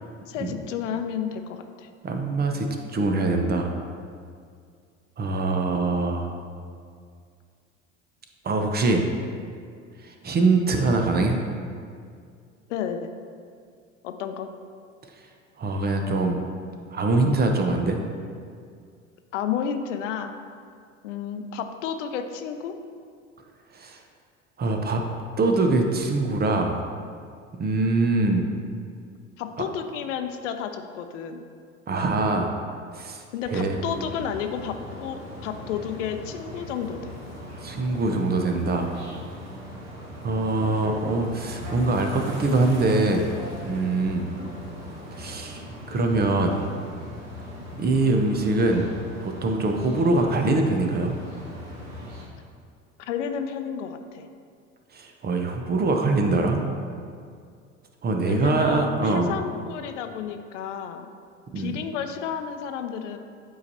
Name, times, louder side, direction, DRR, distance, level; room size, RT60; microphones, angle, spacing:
voice 1, 0.2-1.9 12.7-13.1 14.0-14.5 19.3-20.3 21.0-22.7 29.4-31.5 33.3-37.2 53.0-54.3 58.3-61.1 61.6-63.2, left 8 dB, 75° left, 7 dB, 0.6 m, -31 dB
voice 2, 2.0-2.7 2.9-3.7 5.2-6.3 8.4-9.0 10.1-11.4 15.6-16.4 16.9-18.0 23.7-24.0 24.6-25.0 25.4-26.8 27.6-28.4 31.9-32.5 32.9-33.8 37.6-38.9 40.2-43.3 43.6-44.3 45.2-45.6 45.9-46.6 47.8-48.9 49.2-51.1 54.9-56.6 58.0-59.3 61.5-61.7, right 2 dB, 25° right, 3 dB, 0.7 m, -23 dB
sound 1, 33.5-52.3, equal, 45° right, 1.4 m, -39 dB
8.3 x 4.7 x 2.8 m, 2.2 s
hypercardioid pair, 75°, 37 cm